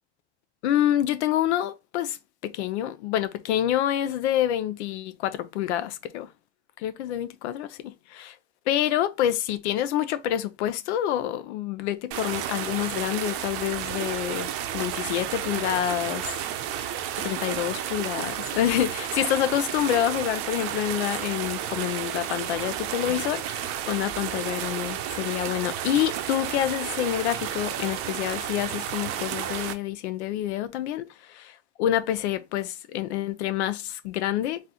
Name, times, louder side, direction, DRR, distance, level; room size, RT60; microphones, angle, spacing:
voice 1, 0.6-2.2 2.4-6.3 6.8-8.3 8.7-16.4 16.8-16.9 17.2-34.6, left 11 dB, 85° left, 0.7 m, -27 dB
sound 1, 12.1-29.7, right 10 dB, 45° right, 0.6 m, -32 dB
3.9 x 2.6 x 2.8 m
supercardioid pair, 145°, 33 cm